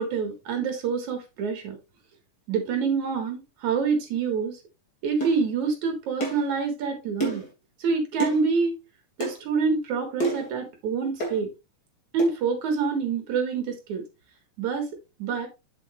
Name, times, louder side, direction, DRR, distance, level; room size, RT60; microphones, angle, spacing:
voice 1, 0.0-1.8 2.5-4.6 5.0-7.4 7.8-8.7 9.2-11.5 12.1-14.0 14.6-14.9 15.2-15.5, right 5 dB, 70° right, 4 dB, 3.4 m, -26 dB
sound 1, 5.2-5.4 6.2-6.5 7.2-7.5 8.2-8.4 9.2-9.4 10.2-10.5 11.2-11.4 12.2-12.3, right 2 dB, 30° left, 3.4 m, -28 dB
8.8 x 7.6 x 2.6 m, 0.24 s
omnidirectional pair, 3.7 m